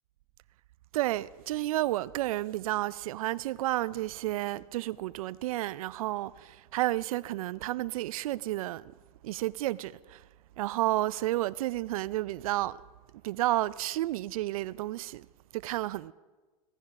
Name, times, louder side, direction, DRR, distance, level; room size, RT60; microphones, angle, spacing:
voice 1, 0.9-8.9 9.2-10.2 10.6-12.8 13.2-15.3 15.5-16.1, right 16 dB, 70° right, 0.4 m, -31 dB
16.5 x 14.0 x 5.3 m
hypercardioid pair, 125°, 19 cm